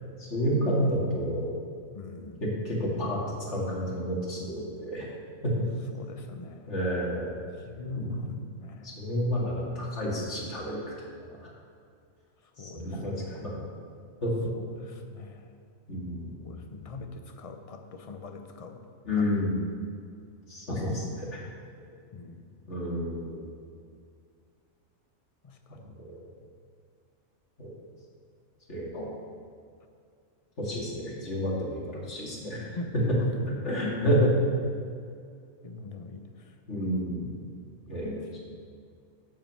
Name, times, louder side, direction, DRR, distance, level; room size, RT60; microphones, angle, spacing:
voice 1, 0.2-1.5 2.4-3.2 3.5-5.1 5.4-5.5 6.7-7.4 7.9-8.3 8.8-10.9 12.7-13.6 14.2-14.5 15.9-16.5 19.0-19.6 20.5-21.4 22.7-23.5 26.0-26.2 27.6-27.7 28.7-29.1 30.6-32.7 33.6-34.3 36.7-37.2 37.9-38.2, equal, 60° left, -5 dB, 2.6 m, -30 dB
voice 2, 1.9-2.4 5.9-6.8 7.7-8.9 12.6-13.5 14.5-15.5 16.4-18.8 19.2-19.4 20.7-21.2 22.1-22.4 25.4-25.5 32.7-33.6 35.6-36.2 37.2-37.4, left 2 dB, 35° left, 5 dB, 0.6 m, -40 dB
9.0 x 5.7 x 7.5 m, 2.3 s
omnidirectional pair, 1.4 m